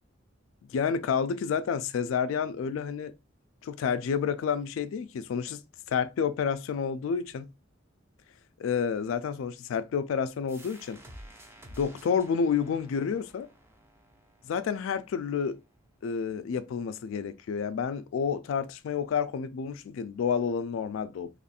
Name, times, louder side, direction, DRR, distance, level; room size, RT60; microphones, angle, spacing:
voice 1, 0.7-3.1 3.6-5.6 5.9-7.5 8.6-11.0 11.8-13.5 14.4-15.6 16.0-21.3, left 6 dB, 85° left, 0.3 m, -29 dB
sound 1, 10.5-15.9, right 1 dB, 10° right, 0.5 m, -52 dB
3.0 x 2.4 x 4.1 m
head